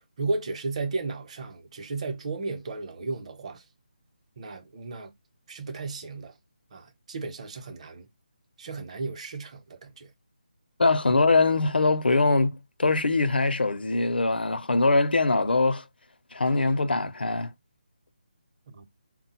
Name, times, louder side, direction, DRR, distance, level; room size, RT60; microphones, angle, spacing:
voice 1, 0.0-3.6 4.4-5.1 5.5-6.4 6.7-8.1 8.6-10.1 18.7-18.8, right 3 dB, 40° right, 0.7 m, -34 dB
voice 2, 10.8-15.8 16.3-17.5, left 3 dB, 80° left, 0.6 m, -22 dB
3.7 x 2.2 x 4.3 m
figure-of-eight pair, 155°, 5 cm